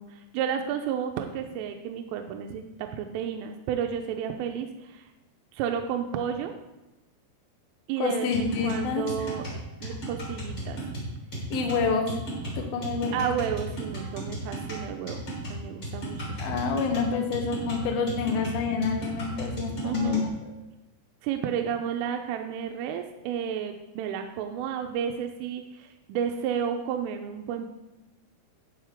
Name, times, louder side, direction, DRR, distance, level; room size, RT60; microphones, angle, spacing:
voice 1, 0.0-5.1 5.5-6.5 7.9-9.5 9.8-10.8 12.7-12.9 13.1-16.6 19.8-20.2 21.2-27.7, right 8 dB, 85° right, 5 dB, 3.2 m, -32 dB
voice 2, 8.0-9.1 9.8-10.0 11.5-12.1 12.6-13.1 16.4-20.5, left 5 dB, 90° left, 3 dB, 2.0 m, -28 dB
sound 1, 8.3-20.3, right 1 dB, 25° left, 3.8 m, -35 dB
13.0 x 8.2 x 3.6 m, 1.0 s
omnidirectional pair, 5.9 m